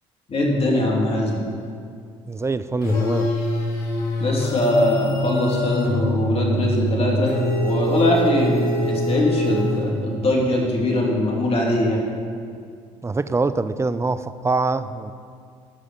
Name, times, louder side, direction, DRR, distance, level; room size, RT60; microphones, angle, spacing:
voice 1, 0.3-1.5 4.2-12.1, left 1 dB, 40° left, -2 dB, 2.9 m, -21 dB
voice 2, 2.3-3.3 13.0-15.1, right 3 dB, 20° right, 13 dB, 0.5 m, -24 dB
sound 1, 2.8-10.3, left 1 dB, 75° left, 2.1 m, -24 dB
12.5 x 5.0 x 6.9 m, 2.2 s
hypercardioid pair, 65°, 15 cm